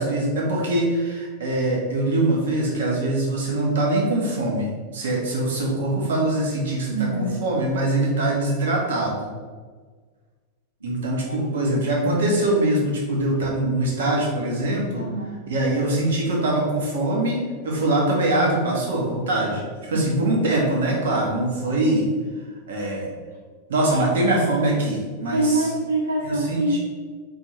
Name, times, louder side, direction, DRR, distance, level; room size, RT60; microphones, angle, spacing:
voice 1, 0.0-9.3 10.8-15.1 15.5-22.1 22.7-23.1 23.7-25.6 26.2-26.8, right 1 dB, 60° right, -2 dB, 1.1 m, -23 dB
voice 2, 6.9-7.5 10.8-11.9 15.0-15.4 19.9-20.3 23.9-24.0 25.3-26.8, right 1 dB, 80° right, -1 dB, 0.4 m, -26 dB
4.1 x 3.6 x 3.1 m, 1.5 s
figure-of-eight pair, 90°, 0 cm